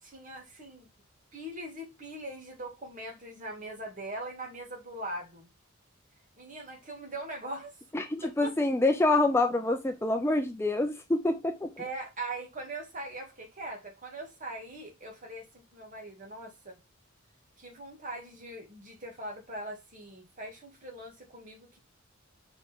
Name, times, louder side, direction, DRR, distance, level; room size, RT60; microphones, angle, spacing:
voice 1, 0.0-0.9 1.3-5.5 6.4-7.8 8.2-8.5 11.8-16.8 17.6-21.8, right 1 dB, 40° right, 2.1 m, -41 dB
voice 2, 7.9-11.7, left 2 dB, 10° left, 0.5 m, -26 dB
5.8 x 4.8 x 3.6 m
head